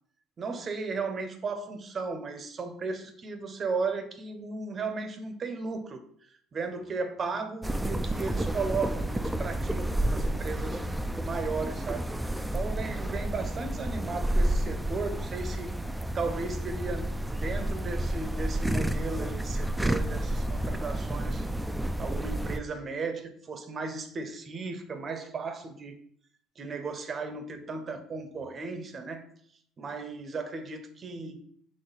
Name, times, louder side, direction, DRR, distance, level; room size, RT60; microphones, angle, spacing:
voice 1, 0.4-6.0 6.5-10.8 11.2-12.0 12.5-15.7 16.1-17.1 17.4-21.4 22.0-25.9 26.6-29.2 29.8-31.4, right 4 dB, 40° right, 8 dB, 0.7 m, -35 dB
sound 1, 7.6-22.6, right 1 dB, 5° right, 0.3 m, -30 dB
3.9 x 3.2 x 3.9 m, 0.62 s
supercardioid pair, 85°, 0 cm